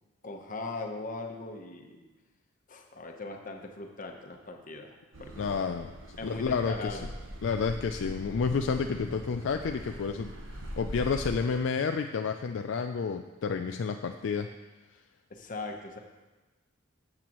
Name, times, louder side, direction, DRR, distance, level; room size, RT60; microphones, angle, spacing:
voice 1, 0.2-2.0 2.7-5.5 6.2-7.1 15.3-16.0, left 3 dB, 40° left, 3 dB, 0.9 m, -40 dB
Car passing by / Accelerating revving vroom, 5.1-11.3, equal, 60° right, 1.0 m, -42 dB
voice 2, 5.4-7.0 7.4-14.5, left 5 dB, 60° left, 6 dB, 0.4 m, -30 dB
13.5 x 7.6 x 3.0 m, 1.2 s
head